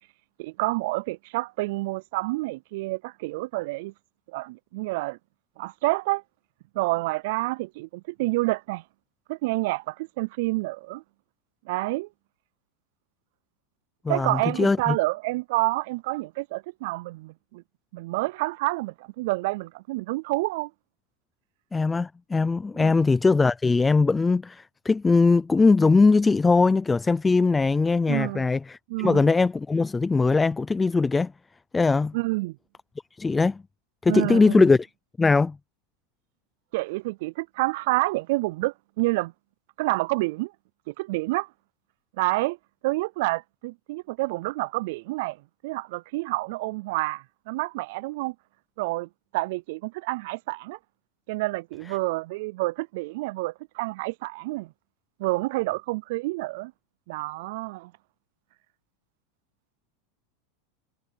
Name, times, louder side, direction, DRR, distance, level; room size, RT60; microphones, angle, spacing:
voice 1, 0.4-3.9 4.3-5.2 5.6-6.2 6.8-8.8 9.3-11.0 11.7-12.1 14.1-17.6 17.9-20.7 22.8-23.0 28.1-28.5 28.9-29.3 32.1-32.6 34.1-34.7 36.7-39.3 39.8-40.5 40.9-41.5 42.2-42.6 42.8-45.4 45.6-48.3 48.8-50.8 51.3-54.7 55.2-56.7 57.1-57.9, right 22 dB, 65° right, 0.3 m, -28 dB
voice 2, 14.0-15.0 21.7-31.3 31.7-32.2 33.1-33.6 34.0-34.8 35.2-35.6, left 4 dB, 10° left, 0.5 m, -21 dB
supercardioid pair, 130°, 0 cm